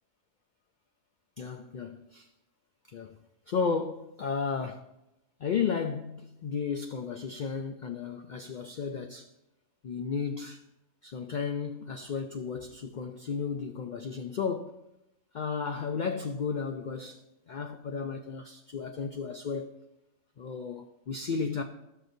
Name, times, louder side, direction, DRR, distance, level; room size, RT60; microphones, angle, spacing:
voice 1, 1.4-2.3 2.9-3.2 3.5-4.8 5.4-9.3 9.8-10.6 11.0-14.7 15.3-17.2 17.5-19.7 20.4-21.6, left 5 dB, 65° left, 0.4 m, -33 dB
14.5 x 6.2 x 2.6 m
omnidirectional pair, 1.4 m